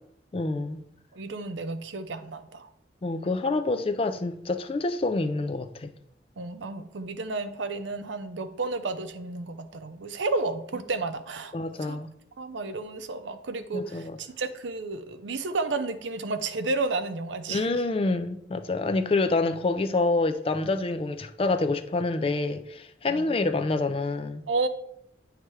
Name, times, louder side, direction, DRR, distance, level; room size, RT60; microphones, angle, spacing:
voice 1, 0.3-0.8 3.0-5.9 11.5-12.1 13.7-14.2 17.5-24.4, left 3 dB, 30° left, 0.4 m, -27 dB
voice 2, 1.1-2.7 6.4-11.5 11.9-12.0 12.4-17.7 23.1-23.4 24.5-24.7, right 3 dB, 80° right, 0.6 m, -32 dB
8.9 x 3.3 x 4.7 m
head